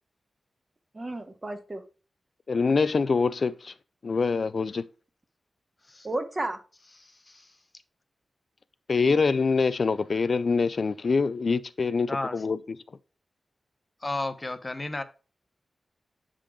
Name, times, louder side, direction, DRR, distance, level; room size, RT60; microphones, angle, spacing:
voice 1, 0.9-1.8 6.0-6.6, right 2 dB, 35° right, 1.2 m, -32 dB
voice 2, 2.5-3.7 4.0-4.8 8.9-12.6, left 4 dB, 60° left, 0.3 m, -25 dB
voice 3, 14.0-15.0, left 2 dB, 35° left, 0.9 m, -32 dB
8.3 x 3.8 x 5.0 m
cardioid pair, 60°, 0 cm